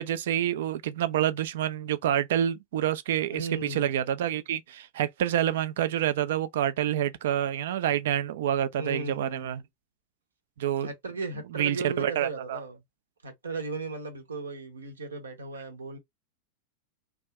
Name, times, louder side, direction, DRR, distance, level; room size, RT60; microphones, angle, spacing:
voice 1, 0.0-9.6 10.6-10.9 11.5-12.6, right 10 dB, 55° right, 0.4 m, -27 dB
voice 2, 3.3-3.9 8.8-9.6 10.8-12.8 13.2-16.0, right 3 dB, 70° right, 0.8 m, -36 dB
2.6 x 2.3 x 3.0 m
figure-of-eight pair, 90°, 0 cm